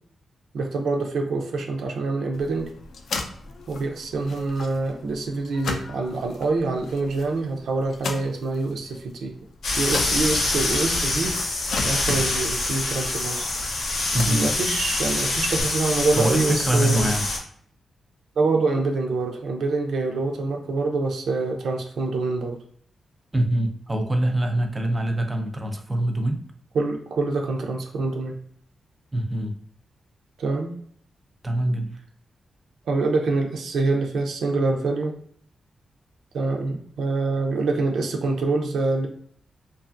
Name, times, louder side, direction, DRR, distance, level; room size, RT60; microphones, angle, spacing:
voice 1, 0.5-2.7 3.7-9.3 9.8-13.5 14.3-17.1 18.4-22.6 26.7-28.4 30.4-30.7 32.9-35.1 36.3-39.1, right 3 dB, 85° right, 2 dB, 0.5 m, -25 dB
sound 1, 2.3-15.6, left 4 dB, 65° left, 0.4 m, -38 dB
sound 2, 9.6-17.4, left 2 dB, 90° left, 0.7 m, -25 dB
voice 2, 14.1-14.5 16.1-17.3 23.3-26.4 29.1-29.5 31.4-31.9, right 1 dB, 15° right, 4 dB, 0.4 m, -24 dB
2.7 x 2.3 x 2.6 m, 0.62 s
wide cardioid pair, 165°, 0 cm